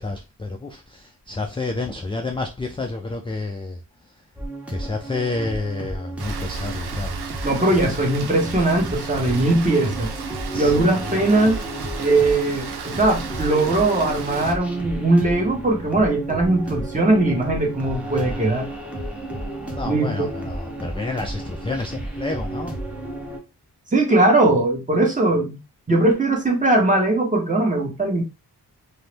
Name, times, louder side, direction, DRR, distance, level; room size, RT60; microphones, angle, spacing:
voice 1, 0.0-3.8 4.7-7.2 10.5-10.8 19.7-22.8, left 3 dB, 15° left, 0.3 m, -29 dB
sound 1, 4.4-23.4, right 1 dB, 5° right, 0.8 m, -33 dB
Rain, 6.2-14.5, right 4 dB, 70° right, 0.6 m, -34 dB
voice 2, 7.4-10.1 10.5-11.6 12.0-18.7 19.9-20.3 23.9-25.6 25.9-28.2, right 2 dB, 20° right, 1.1 m, -20 dB
2.6 x 2.0 x 3.2 m
cardioid pair, 60°, 40 cm